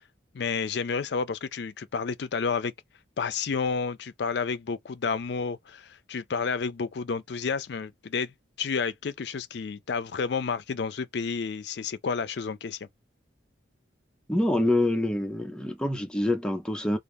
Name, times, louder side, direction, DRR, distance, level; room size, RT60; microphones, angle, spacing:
voice 1, 0.3-2.7 3.2-8.3 8.6-12.9, left 5 dB, 60° left, 0.4 m, -30 dB
voice 2, 14.3-17.0, left 1 dB, 5° left, 0.5 m, -26 dB
2.4 x 2.3 x 3.3 m
head